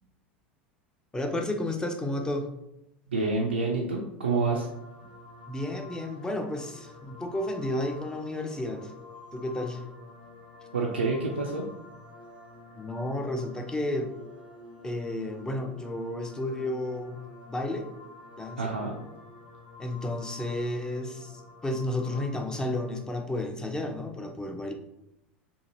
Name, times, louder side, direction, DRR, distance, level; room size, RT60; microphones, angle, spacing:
voice 1, 1.1-2.5 5.5-8.9 9.3-9.8 12.8-14.1 14.8-17.2 17.5-17.9 18.4-18.7 19.8-24.7, left 1 dB, 10° left, 4 dB, 0.5 m, -32 dB
voice 2, 3.1-4.7 10.7-11.6 18.6-18.9, right 3 dB, 85° right, -1 dB, 0.3 m, -28 dB
sound 1, 4.6-23.0, left 3 dB, 75° left, 0.8 m, -49 dB
2.8 x 2.5 x 2.6 m, 0.85 s
figure-of-eight pair, 80°, 6 cm